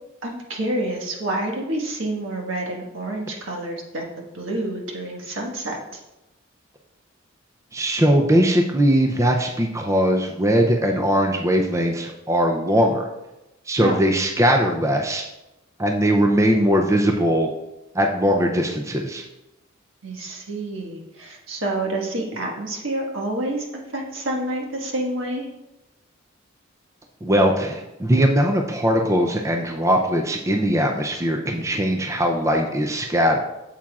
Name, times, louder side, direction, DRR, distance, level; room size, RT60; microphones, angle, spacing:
voice 1, 0.2-6.0 13.8-14.0 20.0-23.7 23.9-25.5, right 1 dB, 70° right, 0 dB, 1.5 m, -28 dB
voice 2, 7.7-13.1 13.7-15.2 15.8-17.5 17.9-19.2 27.2-33.4, equal, 15° right, 2 dB, 0.5 m, -20 dB
8.6 x 7.4 x 2.4 m, 0.97 s
head